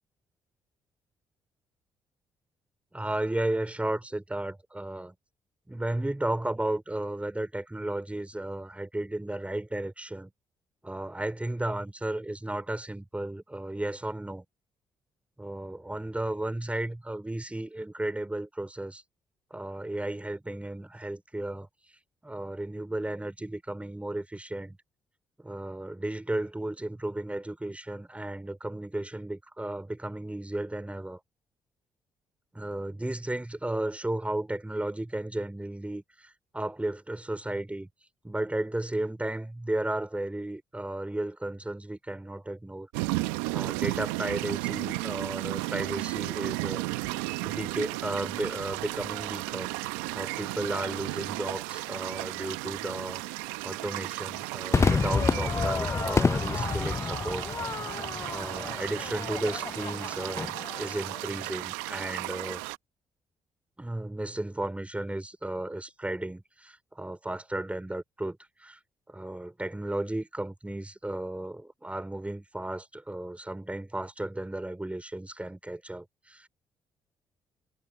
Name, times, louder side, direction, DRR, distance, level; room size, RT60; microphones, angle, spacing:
voice 1, 2.9-5.1 5.7-10.3 10.8-14.4 15.4-19.0 19.5-21.7 22.2-24.8 25.4-31.2 32.5-37.9 38.2-42.9 43.5-47.1 47.4-53.2 53.6-57.5 58.3-62.6 63.8-68.8 69.1-76.5, right 1 dB, 10° right, 4.3 m, -34 dB
sound 1, 42.9-62.8, right 22 dB, 85° right, 0.8 m, -34 dB
Crowd / Fireworks, 54.7-61.3, left 4 dB, 30° left, 0.6 m, -29 dB
hypercardioid pair, 45°, 10 cm